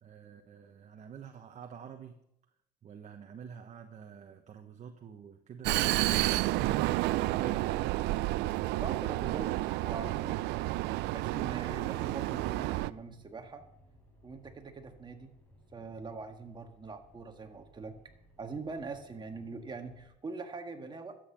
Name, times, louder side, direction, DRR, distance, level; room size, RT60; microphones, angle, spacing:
voice 1, 0.0-2.2 2.8-5.8 6.1-6.7 7.3-7.8, right 7 dB, 45° right, 4 dB, 1.2 m, -47 dB
Vehicle, 5.6-12.9, right 18 dB, 90° right, 0.4 m, -30 dB
sound 1, 6.4-20.1, equal, 10° left, 4.6 m, -61 dB
voice 2, 8.8-10.5 11.1-13.7 14.2-15.3 15.7-17.9 18.4-21.2, right 4 dB, 25° right, 4 dB, 1.8 m, -43 dB
12.5 x 8.1 x 6.7 m, 0.79 s
cardioid pair, 110°, 17 cm